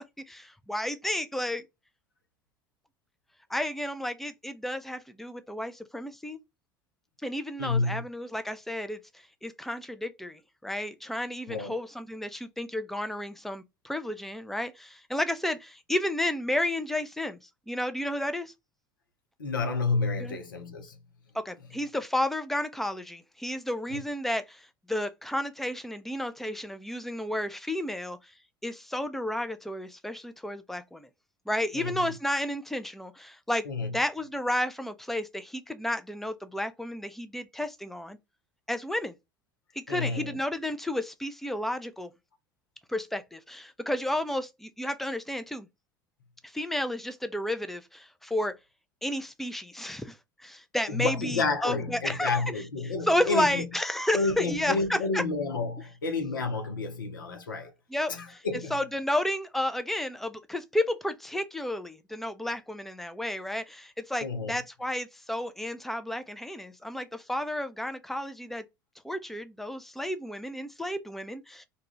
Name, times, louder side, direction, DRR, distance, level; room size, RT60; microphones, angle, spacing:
voice 1, 0.3-1.6 3.5-6.4 7.2-9.0 9.4-17.4 17.7-18.5 20.2-20.4 21.3-24.4 24.9-28.2 28.6-31.1 31.5-33.6 33.9-38.2 38.7-39.1 39.9-42.1 42.9-45.7 46.5-48.5 49.0-50.1 50.4-52.4 53.1-55.2 57.9-58.4 58.7-68.6 69.0-71.7, left 1 dB, ahead, 0.5 m, -32 dB
voice 2, 7.6-8.0 11.5-11.7 19.4-21.0 23.9-24.0 31.7-32.1 33.7-34.0 39.9-40.4 50.9-53.7 54.1-57.7 58.1-58.7 64.2-64.6, left 3 dB, 80° left, 0.7 m, -30 dB
2.3 x 2.3 x 3.0 m
figure-of-eight pair, 70°, 11 cm